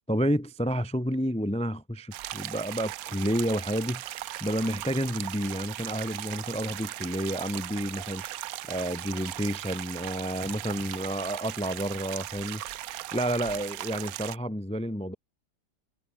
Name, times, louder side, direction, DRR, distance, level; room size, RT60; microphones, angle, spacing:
voice 1, 0.1-12.8 13.1-15.1, equal, 5° left, 0.4 m, -30 dB
sound 1, 2.1-14.4, right 14 dB, 70° right, 0.9 m, -38 dB
omnidirectional pair, 1.9 m